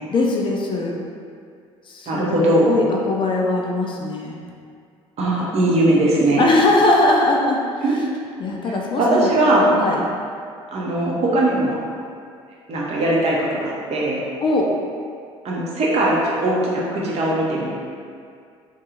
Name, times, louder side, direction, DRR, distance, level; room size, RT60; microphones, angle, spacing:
voice 1, 0.1-1.0 1.9-4.4 6.4-7.6 8.4-9.3 9.8-10.0 14.4-14.7, left 2 dB, 30° left, -1 dB, 0.3 m, -20 dB
voice 2, 2.1-2.8 5.2-6.4 7.8-8.0 9.0-9.7 10.7-11.8 12.7-14.2 15.4-17.7, right 1 dB, 45° right, -4 dB, 0.7 m, -19 dB
2.5 x 2.3 x 2.9 m, 2.2 s
figure-of-eight pair, 55°, 16 cm